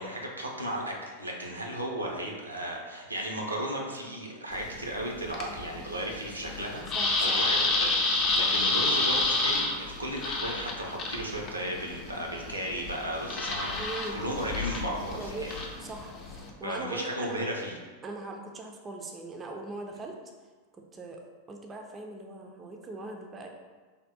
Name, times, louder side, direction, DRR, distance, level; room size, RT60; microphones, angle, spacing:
voice 1, 0.0-6.8 7.2-15.5 16.6-17.8, right 1 dB, 80° right, -1 dB, 0.6 m, -35 dB
sound 1, 4.5-16.5, left 3 dB, 35° left, 0.5 m, -30 dB
voice 2, 6.9-7.4 8.3-8.5 13.7-14.2 15.2-15.5 15.8-17.5 18.0-20.2 20.9-21.2 21.5-23.5, right 2 dB, 20° right, 2 dB, 0.4 m, -40 dB
3.4 x 2.2 x 4.0 m, 1.4 s
figure-of-eight pair, 90°, 0 cm